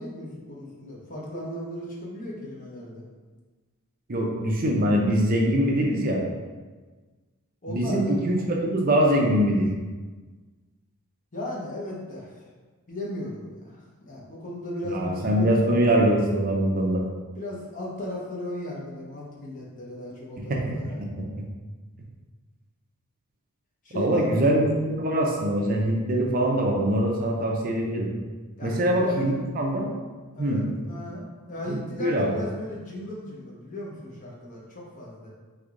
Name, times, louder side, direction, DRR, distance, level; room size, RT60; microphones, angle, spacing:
voice 1, 0.0-3.0 7.6-8.2 11.3-12.4 12.9-15.9 17.4-21.0 23.8-24.3 28.6-29.4 30.3-35.3, left 1 dB, 35° left, -4 dB, 0.9 m, -36 dB
voice 2, 4.1-6.2 7.7-8.4 8.7-9.7 14.9-17.0 20.4-20.6 21.0-21.3 24.0-28.1 28.6-29.9 30.4-30.6 32.0-32.3, right 1 dB, 40° right, 0 dB, 0.5 m, -23 dB
3.4 x 3.3 x 3.7 m, 1.3 s
head